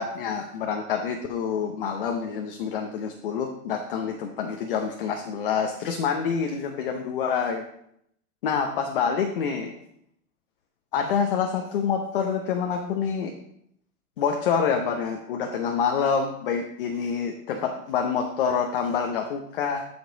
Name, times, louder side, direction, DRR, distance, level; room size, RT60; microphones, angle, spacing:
voice 1, 0.0-7.6 8.4-9.7 10.9-13.3 14.2-19.8, left 6 dB, 35° left, 3 dB, 0.7 m, -27 dB
14.0 x 5.3 x 3.8 m, 0.73 s
supercardioid pair, 175°, 47 cm